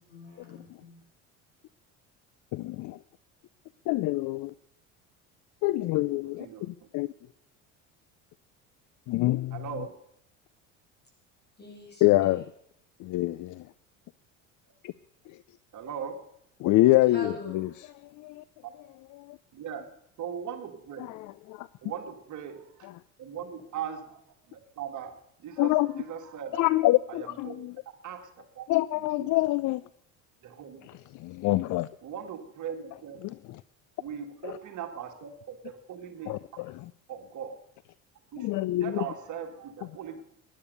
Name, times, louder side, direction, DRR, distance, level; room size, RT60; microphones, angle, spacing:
voice 1, 0.1-1.0 11.6-12.3 17.1-17.7, left 2 dB, 25° left, 0 dB, 7.7 m, -43 dB
voice 2, 2.5-3.0 3.9-4.5 5.6-7.1 9.1-9.6 12.0-12.4 13.0-13.7 14.8-14.9 15.3-15.4 16.6-17.7 18.0-18.4 19.1-19.4 21.0-21.7 22.8-23.0 25.6-25.9 26.5-27.8 28.7-29.8 30.8-31.9 33.2-33.6 34.4-34.6 36.3-36.9 38.4-39.1, left 17 dB, 55° left, 18 dB, 0.6 m, -26 dB
voice 3, 6.4-6.9 9.5-10.0 15.7-16.3 19.5-19.9 20.2-21.2 21.8-22.9 23.2-24.2 24.5-26.7 27.1-27.6 28.0-28.3 28.6-28.7 29.2-29.3 30.4-30.9 32.0-33.2 34.0-36.6 37.1-37.6 38.3-38.5 38.8-40.2, right 8 dB, 50° right, 6 dB, 2.0 m, -39 dB
16.0 x 10.5 x 6.7 m, 0.73 s
supercardioid pair, 90°, 38 cm